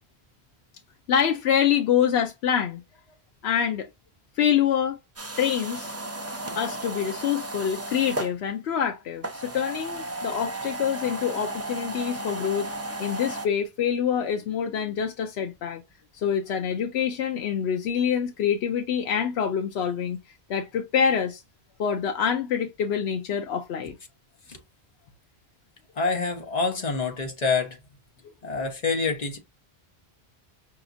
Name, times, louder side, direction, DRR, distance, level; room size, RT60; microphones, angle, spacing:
voice 1, 1.1-2.8 3.4-3.9 4.4-5.0 5.4-5.9 6.6-12.7 13.0-15.8 16.1-20.2 20.5-21.4 21.8-24.0, left 8 dB, 80° left, 0.9 m, -26 dB
sound 1, 5.2-8.3 9.2-13.5, right 1 dB, 20° right, 0.5 m, -34 dB
voice 2, 26.0-27.8 28.4-29.4, left 4 dB, 40° left, 1.1 m, -26 dB
5.2 x 2.8 x 2.5 m
omnidirectional pair, 1.1 m